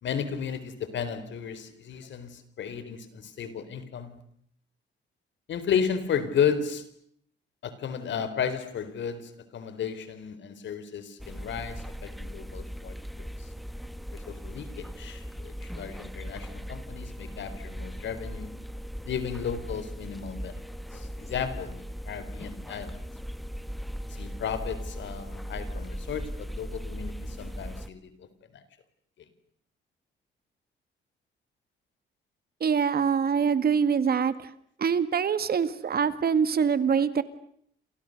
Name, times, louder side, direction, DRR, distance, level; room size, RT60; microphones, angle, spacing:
voice 1, 0.0-4.2 5.5-6.8 7.6-13.5 14.1-18.5 19.0-20.6 20.9-23.0 24.1-28.3 28.5-28.6, left 7 dB, 70° left, 12 dB, 4.3 m, -33 dB
sound 1, 11.2-27.9, equal, ahead, 1.5 m, -39 dB
voice 2, 32.6-34.5 34.8-37.2, right 6 dB, 50° right, 13 dB, 2.1 m, -24 dB
29.5 x 28.0 x 6.7 m, 0.65 s
cardioid pair, 90°, 20 cm